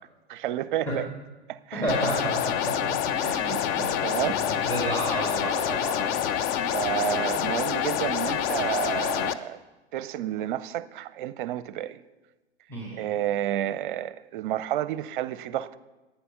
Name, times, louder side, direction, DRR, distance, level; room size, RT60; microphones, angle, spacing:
voice 1, 0.3-1.1 1.5-2.0 3.2-3.6 4.0-4.4 6.7-9.6 9.9-12.0 13.0-15.8, right 12 dB, 50° right, 0.6 m, -30 dB
voice 2, 1.7-3.9 4.2-6.3 12.7-13.1, right 1 dB, 5° left, 2.3 m, -32 dB
sound 1, 1.9-9.3, left 9 dB, 30° left, 0.5 m, -27 dB
11.0 x 9.1 x 5.5 m
figure-of-eight pair, 105°, 33 cm